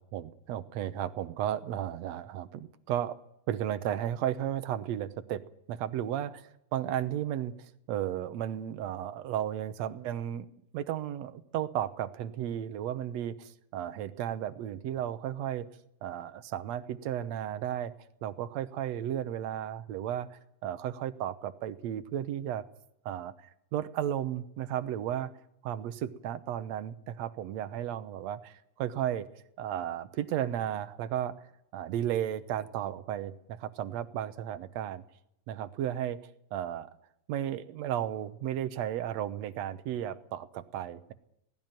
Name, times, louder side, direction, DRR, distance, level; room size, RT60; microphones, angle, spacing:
voice 1, 0.0-3.2 3.5-5.4 5.7-10.5 10.7-15.7 16.0-17.9 18.2-22.6 23.1-25.3 25.6-29.3 29.6-31.4 31.7-35.0 35.5-36.2 36.5-36.9 37.3-41.1, right 11 dB, 70° right, 12 dB, 2.0 m, -34 dB
18.0 x 16.5 x 9.1 m, 0.78 s
omnidirectional pair, 3.5 m